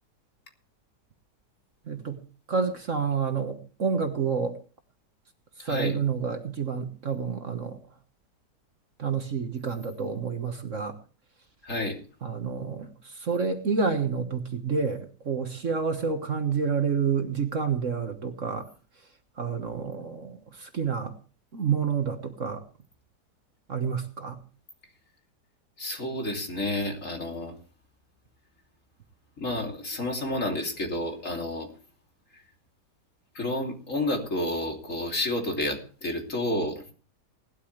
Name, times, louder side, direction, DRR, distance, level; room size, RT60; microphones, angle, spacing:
voice 1, 1.8-2.2 2.5-4.6 5.6-7.8 9.0-11.0 12.2-18.7 19.0-19.1 19.3-21.2 21.5-22.6 23.7-24.4, right 5 dB, 50° right, 7 dB, 1.6 m, -29 dB
voice 2, 5.6-6.0 11.6-12.0 25.8-27.5 29.4-31.7 32.3-32.4 33.3-36.8, left 1 dB, 45° left, 2 dB, 3.3 m, -30 dB
19.0 x 12.5 x 3.2 m, 0.37 s
omnidirectional pair, 1.8 m